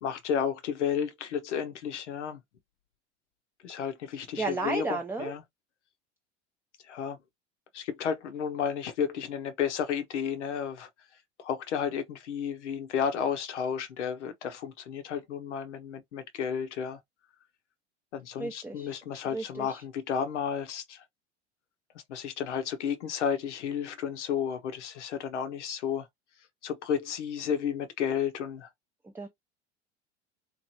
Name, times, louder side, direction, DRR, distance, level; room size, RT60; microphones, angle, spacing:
voice 1, 0.0-2.4 3.6-5.4 6.9-7.2 7.7-10.9 11.4-17.0 18.1-21.0 22.1-26.1 26.6-28.7, left 8 dB, 75° left, 0.7 m, -32 dB
voice 2, 4.4-5.3 18.4-19.0 19.3-19.8 29.0-29.3, right 3 dB, 5° right, 0.4 m, -33 dB
3.0 x 2.5 x 2.7 m
figure-of-eight pair, 75°, 35 cm